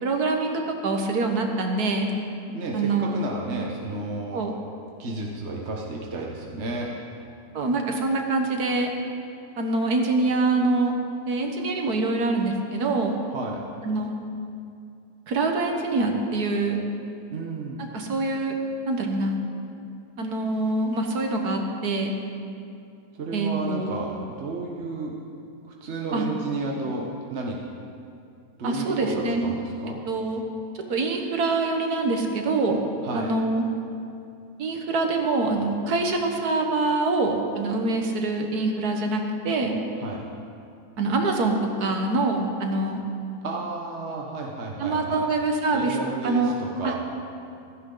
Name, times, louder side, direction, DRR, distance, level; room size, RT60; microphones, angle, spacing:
voice 1, 0.0-2.1 2.7-3.2 4.3-4.5 7.5-8.9 9.6-10.9 11.3-13.2 13.8-14.1 15.3-16.8 17.9-18.5 18.9-19.4 20.2-22.1 23.3-23.9 26.1-26.2 28.6-29.4 30.1-30.4 30.9-32.8 33.1-33.7 34.6-39.8 41.0-43.0 44.8-46.0 46.2-46.6 46.8-47.0, right 3 dB, 70° right, 3 dB, 1.8 m, -25 dB
voice 2, 2.5-4.4 5.0-6.9 13.3-13.6 17.3-17.8 23.2-25.2 25.6-27.6 28.6-30.0 33.0-33.4 40.0-40.2 43.4-45.3 45.7-47.0, right 3 dB, 45° right, -1 dB, 1.2 m, -32 dB
16.0 x 14.5 x 3.9 m, 2.5 s
omnidirectional pair, 1.7 m